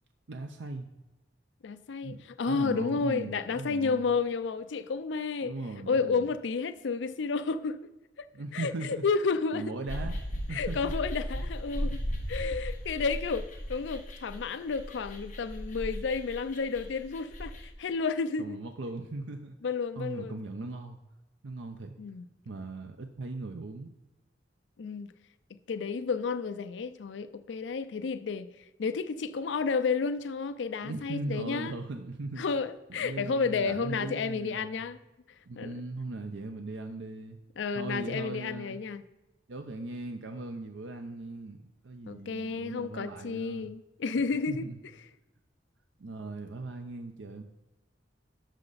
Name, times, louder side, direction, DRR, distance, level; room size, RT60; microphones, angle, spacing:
voice 1, 0.3-0.9 2.0-4.1 5.4-6.3 8.3-9.0 9.5-10.2 10.5-10.9 18.4-19.5 20.0-21.0 21.4-21.9 22.4-23.9 30.8-32.4 32.9-34.8 35.5-37.4 37.7-38.8 39.5-43.7 44.5-44.8 46.0-47.4, right 2 dB, 80° right, 0.6 m, -39 dB
voice 2, 1.6-5.5 5.9-7.9 8.2-8.3 8.5-9.7 10.5-18.6 19.6-20.4 22.0-22.3 24.8-25.1 25.7-28.5 28.8-31.8 32.4-35.0 35.6-35.7 37.6-39.0 42.1-44.6, left 5 dB, 70° left, 0.4 m, -31 dB
sound 1, 9.9-17.7, equal, 45° left, 1.7 m, -36 dB
11.5 x 6.6 x 4.0 m
head